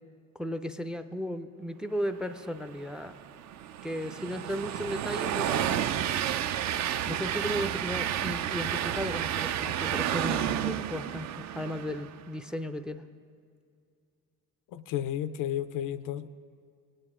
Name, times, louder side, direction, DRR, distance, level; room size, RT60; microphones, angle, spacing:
voice 1, 0.4-3.2 3.8-6.0 7.1-13.0, equal, ahead, 11 dB, 0.4 m, -35 dB
Train, 2.8-12.2, right 10 dB, 55° right, 0.5 m, -31 dB
voice 2, 14.7-16.3, left 11 dB, 70° left, 14 dB, 0.5 m, -32 dB
17.5 x 8.9 x 3.6 m, 2.3 s
supercardioid pair, 80°, 33 cm